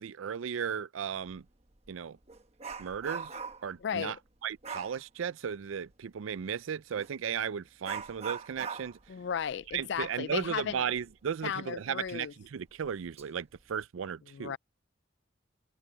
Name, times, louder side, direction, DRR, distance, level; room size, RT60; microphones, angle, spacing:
voice 1, 0.0-1.4 1.9-2.2 2.8-3.3 3.6-4.2 4.4-9.0 9.7-14.5, right 7 dB, 85° right, 0.4 m, -35 dB
Dog, 1.3-1.4 1.8-3.8 4.6-5.0 7.0-7.1 7.8-11.1 11.4-11.5 12.1-12.2 12.8-13.2 13.6-13.8, right 6 dB, 30° right, 1.2 m, -42 dB
voice 2, 3.8-4.1 9.1-10.8 11.4-12.3 14.3-14.6, left 7 dB, 60° left, 0.4 m, -35 dB
head